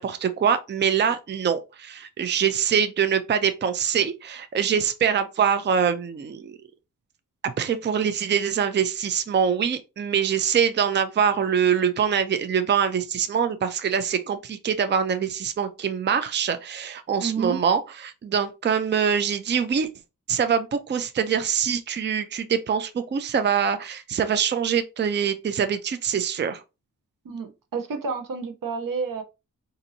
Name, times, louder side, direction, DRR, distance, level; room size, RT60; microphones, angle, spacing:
voice 1, 0.0-6.5 7.4-19.9 20.3-26.6, right 7 dB, 35° right, 0.4 m, -24 dB
voice 2, 17.2-17.6 27.2-29.2, right 5 dB, 85° right, 0.8 m, -30 dB
4.0 x 2.6 x 2.7 m
wide cardioid pair, 120°, 32 cm